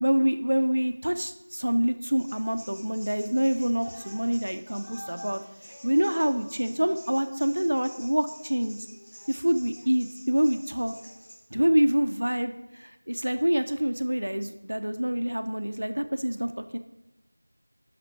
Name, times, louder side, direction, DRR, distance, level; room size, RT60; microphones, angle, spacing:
voice 1, 0.0-5.4 5.8-8.9 9.3-10.9 11.5-16.8, equal, 80° right, 8 dB, 0.8 m, -26 dB
sound 1, 2.1-11.3, equal, 35° left, 2.8 m, -48 dB
11.0 x 5.9 x 4.6 m, 0.94 s
figure-of-eight pair, 175°, 0 cm